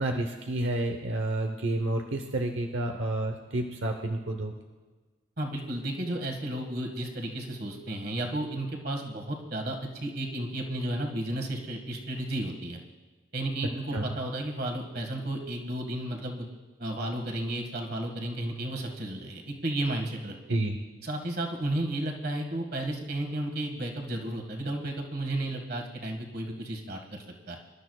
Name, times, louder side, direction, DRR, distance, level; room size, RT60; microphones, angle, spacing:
voice 1, 0.0-4.5 13.9-14.0 20.5-20.8, right 1 dB, 75° right, 3 dB, 0.9 m, -30 dB
voice 2, 5.4-12.8 13.3-16.5 16.8-20.6 21.0-27.6, right 1 dB, 50° right, 2 dB, 1.8 m, -33 dB
25.5 x 12.5 x 2.4 m, 1.3 s
head